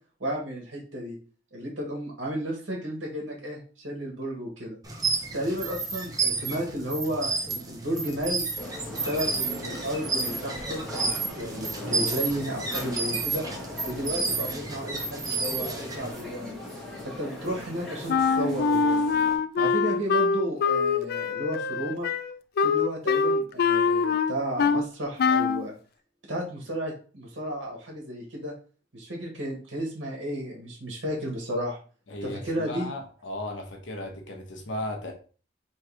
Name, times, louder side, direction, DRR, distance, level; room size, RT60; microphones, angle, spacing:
voice 1, 0.2-1.2 1.5-4.8 5.3-8.4 8.9-11.1 11.3-13.4 13.8-16.5 17.0-19.0 19.6-22.1 22.6-25.7 26.3-28.5 28.9-31.8 32.2-32.9, equal, 75° right, 1.4 m, -33 dB
sound 1, 4.8-16.1, right 4 dB, 20° right, 0.9 m, -31 dB
sound 2, 8.6-19.4, left 1 dB, ahead, 1.4 m, -39 dB
Wind instrument woodwind instrument, 18.1-24.9 25.2-25.6, left 5 dB, 55° left, 0.3 m, -24 dB
voice 2, 32.1-35.1, left 1 dB, 75° left, 0.9 m, -36 dB
3.5 x 3.2 x 4.7 m
head